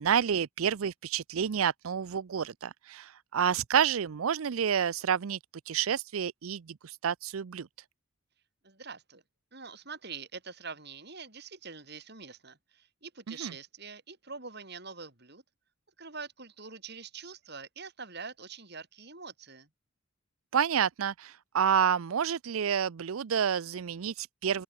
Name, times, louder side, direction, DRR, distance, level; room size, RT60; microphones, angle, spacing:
voice 1, 0.0-5.4 5.7-7.7 13.4-13.5 20.5-24.6, right 8 dB, 90° right, 0.5 m, -29 dB
voice 2, 8.6-9.2 9.5-15.4 16.0-19.7, right 5 dB, 50° right, 5.7 m, -44 dB
open air
head